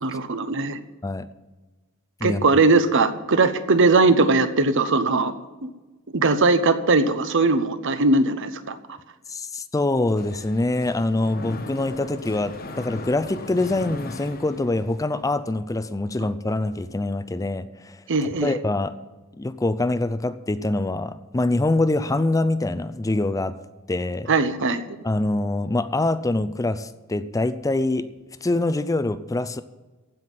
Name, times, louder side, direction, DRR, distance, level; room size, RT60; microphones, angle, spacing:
voice 1, 0.0-0.8 2.2-5.3 5.6-5.7 6.1-8.8 18.1-18.5 24.3-24.8, right 3 dB, 60° right, 1.0 m, -20 dB
voice 2, 9.3-18.9 19.4-23.6 23.9-24.3 25.0-28.1 28.4-29.6, left 2 dB, 15° left, 0.4 m, -24 dB
Mechanisms, 10.0-15.2, left 2 dB, 45° left, 1.2 m, -38 dB
15.5 x 5.8 x 9.2 m
head